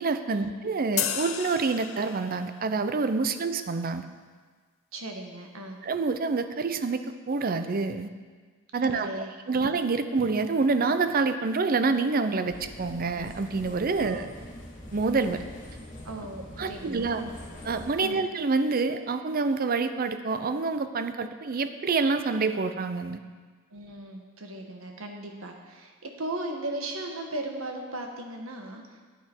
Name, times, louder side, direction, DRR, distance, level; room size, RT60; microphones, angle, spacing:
voice 1, 0.0-4.1 5.8-8.1 8.7-14.2 14.9-15.4 16.6-17.2 17.6-23.2, right 4 dB, 45° right, 10 dB, 0.5 m, -27 dB
sound 1, 1.0-2.6, left 10 dB, 80° left, 0.7 m, -32 dB
voice 2, 4.9-5.8 8.8-9.6 14.0-14.3 16.0-17.3 18.0-18.3 23.7-29.0, right 1 dB, 90° right, 3 dB, 1.3 m, -37 dB
sound 2, 12.5-18.0, equal, 40° left, 2.3 m, -44 dB
9.7 x 8.7 x 4.5 m, 1.5 s
head